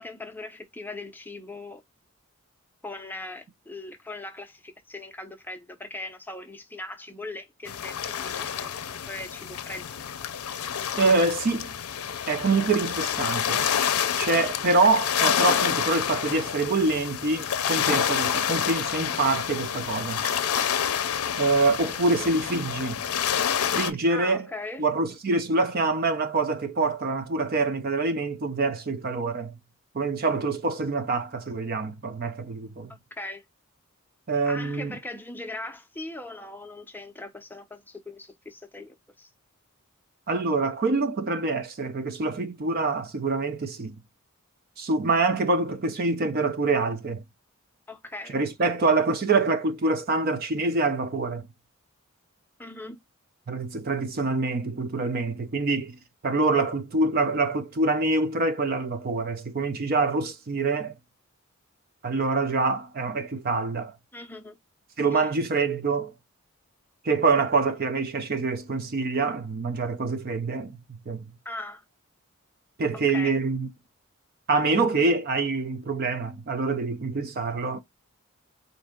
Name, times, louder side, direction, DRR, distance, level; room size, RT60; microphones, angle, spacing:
voice 1, 0.0-1.8 2.8-9.9 20.2-20.7 24.1-24.9 32.9-33.4 34.5-39.3 47.9-48.4 52.6-53.0 64.1-64.6 65.1-65.3 71.4-71.8 72.9-73.4, left 2 dB, 10° left, 0.5 m, -40 dB
sound 1, 7.7-23.9, left 8 dB, 85° left, 0.5 m, -28 dB
voice 2, 11.0-11.7 12.3-13.7 14.2-20.2 21.4-23.0 23.7-24.5 24.8-29.6 29.9-32.9 34.3-34.9 40.3-43.9 44.8-47.2 48.3-51.5 53.5-56.0 56.2-60.9 62.0-63.9 65.0-66.1 67.0-71.2 72.8-73.7 74.5-77.8, right 3 dB, 45° right, 0.4 m, -25 dB
4.3 x 2.7 x 3.5 m
head